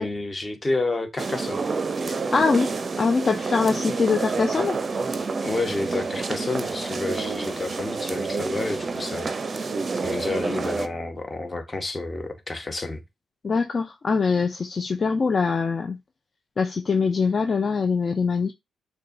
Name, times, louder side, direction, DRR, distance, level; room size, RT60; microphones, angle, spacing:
voice 1, 0.0-1.6 5.4-13.0, left 2 dB, 25° left, 0.9 m, -30 dB
sound 1, 1.2-10.9, right 4 dB, 40° right, 0.5 m, -28 dB
voice 2, 2.1-2.7 3.0-4.8 13.4-16.0 16.6-18.5, left 4 dB, 45° left, 0.4 m, -23 dB
6.4 x 2.2 x 2.6 m
cardioid pair, 70°, 0 cm